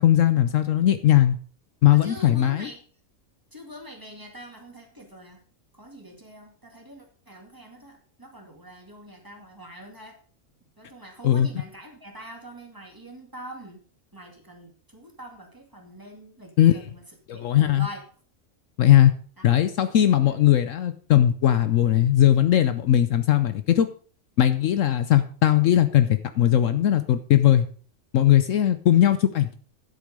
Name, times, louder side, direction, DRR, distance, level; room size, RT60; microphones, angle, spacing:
voice 1, 0.0-1.4 1.8-2.7 11.2-11.5 16.6-16.8 17.3-17.9 18.8-19.1 19.4-23.9 24.4-27.7 28.1-29.5, left 11 dB, 70° left, 11 dB, 1.0 m, -19 dB
voice 2, 1.9-2.8 3.5-5.4 5.7-10.2 10.8-13.8 14.1-17.0 17.3-18.0 19.4-19.5 20.2-20.4, equal, 15° right, 2 dB, 2.4 m, -44 dB
10.5 x 8.1 x 5.2 m, 0.43 s
omnidirectional pair, 1.5 m